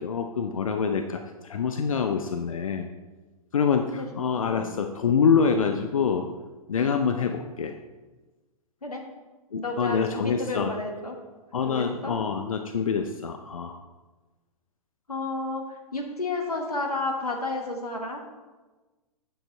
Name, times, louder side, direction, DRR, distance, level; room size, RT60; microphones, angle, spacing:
voice 1, 0.0-2.9 3.5-6.3 6.7-7.8 9.5-10.7 11.5-13.8, left 6 dB, 65° left, 6 dB, 0.7 m, -26 dB
voice 2, 9.5-11.1 11.6-12.1 15.1-18.2, left 2 dB, 80° left, 2 dB, 1.5 m, -31 dB
9.0 x 7.2 x 4.3 m, 1.2 s
figure-of-eight pair, 110°, 19 cm